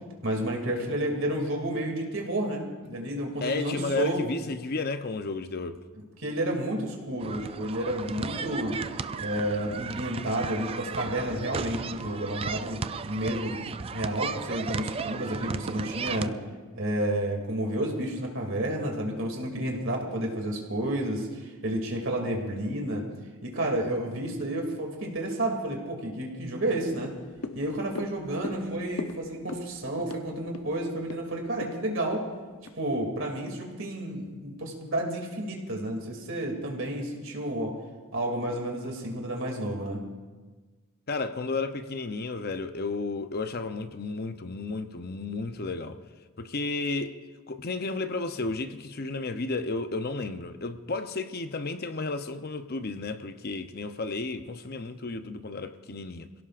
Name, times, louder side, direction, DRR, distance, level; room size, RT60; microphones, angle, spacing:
voice 1, 0.2-4.2 6.2-8.8 9.2-13.6 13.9-16.3 16.7-23.1 23.4-27.1 27.5-32.2 32.8-37.7 38.1-40.0, right 1 dB, 60° right, 2.6 m, -31 dB
voice 2, 3.4-5.8 41.1-46.0 46.4-47.2 47.5-56.3, left 3 dB, 45° left, 0.7 m, -32 dB
sound 1, 7.2-16.3, right 5 dB, 25° right, 0.3 m, -35 dB
sound 2, 26.9-33.4 33.7-33.8, left 3 dB, 90° left, 0.8 m, -41 dB
27.0 x 17.0 x 2.5 m
head